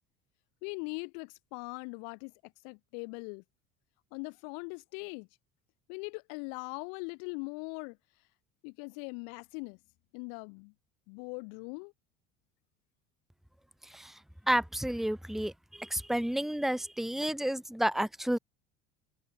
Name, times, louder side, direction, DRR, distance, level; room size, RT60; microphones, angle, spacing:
voice 1, 0.6-3.4 4.1-5.3 5.9-8.0 8.6-9.8 10.1-10.7 11.1-11.9, left 40 dB or more, 60° left, 3.1 m, -41 dB
voice 2, 14.5-15.5 15.8-18.4, right 1 dB, ahead, 1.9 m, -30 dB
figure-of-eight pair, 65°, 39 cm